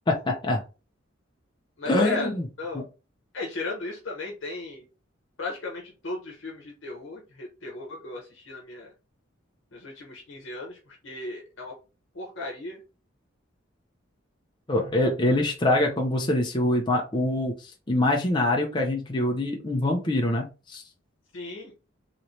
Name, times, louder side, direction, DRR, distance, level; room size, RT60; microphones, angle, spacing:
voice 1, 0.1-0.6 1.9-2.5 2.7-2.8 14.7-17.6 17.9-20.8, left 1 dB, 25° left, 0 dB, 0.5 m, -24 dB
voice 2, 1.8-2.3 2.6-2.8 3.3-4.8 5.4-8.9 9.7-11.7 12.1-12.8 21.3-21.7, left 3 dB, 70° left, -1 dB, 0.9 m, -36 dB
3.1 x 3.0 x 2.7 m, 0.31 s
head